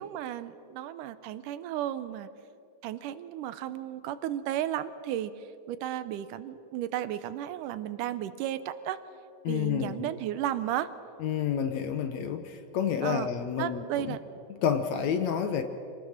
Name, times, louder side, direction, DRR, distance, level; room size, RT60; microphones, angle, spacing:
voice 1, 0.0-2.3 2.8-9.0 9.5-10.9 13.0-13.3 13.6-14.2, right 12 dB, 80° right, 13 dB, 2.2 m, -34 dB
voice 2, 9.4-10.1 11.2-14.2 14.6-15.6, left 8 dB, 70° left, 8 dB, 1.9 m, -29 dB
25.5 x 19.0 x 6.5 m, 2.6 s
omnidirectional pair, 3.8 m